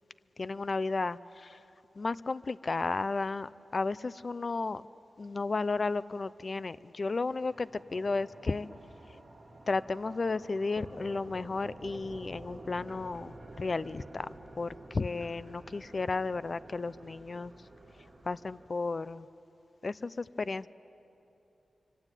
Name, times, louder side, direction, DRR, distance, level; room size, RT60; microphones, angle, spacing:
voice 1, 0.4-1.6 2.0-4.9 5.2-8.7 9.1-9.2 9.7-14.3 14.6-17.5 18.0-19.3 19.8-20.7, left 3 dB, 40° left, 17 dB, 0.5 m, -33 dB
sound 1, 7.3-18.7, right 2 dB, 25° right, 3.3 m, -50 dB
26.0 x 25.0 x 9.0 m, 2.9 s
wide cardioid pair, 115°, 0 cm